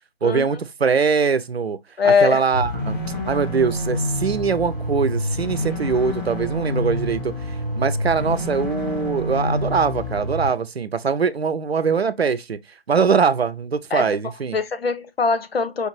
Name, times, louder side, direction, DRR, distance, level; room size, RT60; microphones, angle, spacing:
voice 1, 0.2-1.8 2.0-3.0 3.3-7.3 7.7-12.6 12.9-14.6, right 5 dB, 85° right, 0.7 m, -22 dB
voice 2, 2.0-2.4 13.9-14.1 14.5-15.9, left 5 dB, 75° left, 0.8 m, -21 dB
sound 1, 2.5-10.5, left 1 dB, 55° left, 2.3 m, -27 dB
5.0 x 2.7 x 3.0 m
figure-of-eight pair, 145°, 30 cm